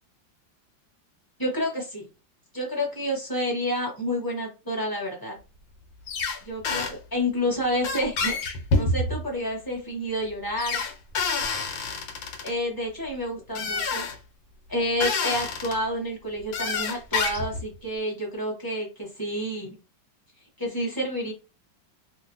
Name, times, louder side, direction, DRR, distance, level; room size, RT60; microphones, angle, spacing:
voice 1, 1.4-2.1 2.5-5.4 6.4-8.4 8.7-10.8 12.4-14.0 14.7-19.7 20.6-21.3, equal, 15° left, -2 dB, 1.0 m, -29 dB
sound 1, 6.1-6.4 6.6-6.9 7.8-9.2 10.6-12.5 13.5-14.1 15.0-15.7 16.5-17.6, left 3 dB, 80° left, 1.4 m, -27 dB
3.0 x 2.5 x 2.7 m, 0.29 s
omnidirectional pair, 2.1 m